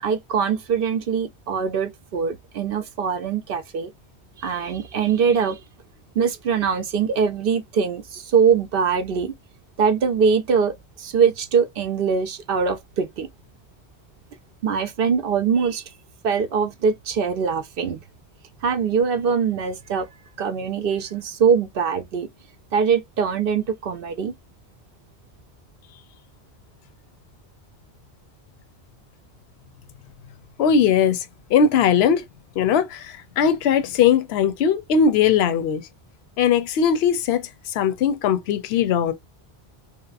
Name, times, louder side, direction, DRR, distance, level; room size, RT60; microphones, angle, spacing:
voice 1, 0.0-3.9 4.4-5.6 6.2-9.3 9.8-13.3 14.6-15.8 16.2-18.0 18.6-20.1 20.4-22.3 22.7-24.3, right 6 dB, 65° right, 0.7 m, -22 dB
voice 2, 30.6-31.2 31.5-32.2 32.6-35.8 36.4-37.5 37.7-39.1, left 7 dB, 70° left, 0.8 m, -19 dB
3.1 x 2.8 x 2.4 m
omnidirectional pair, 1.1 m